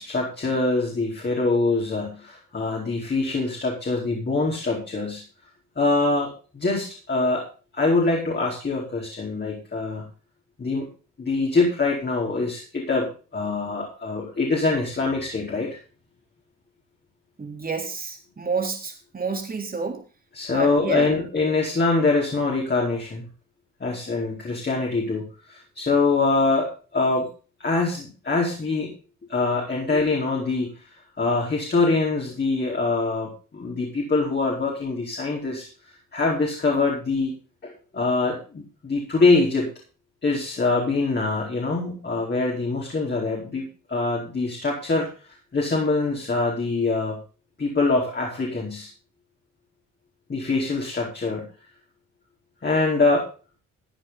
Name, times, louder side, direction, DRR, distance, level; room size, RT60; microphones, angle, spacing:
voice 1, 0.0-5.2 5.8-7.5 7.7-10.0 10.6-10.9 11.2-15.8 20.3-23.3 23.8-27.3 27.6-28.9 29.3-30.7 31.2-35.7 36.1-37.4 37.6-39.7 40.2-45.1 45.5-47.2 47.6-48.9 50.3-51.5 52.6-53.3, left 3 dB, 35° left, -3 dB, 4.6 m, -24 dB
voice 2, 17.4-20.0 20.5-21.1, right 4 dB, 30° right, 3 dB, 3.7 m, -29 dB
14.5 x 9.3 x 4.1 m, 0.35 s
cardioid pair, 90°, 30 cm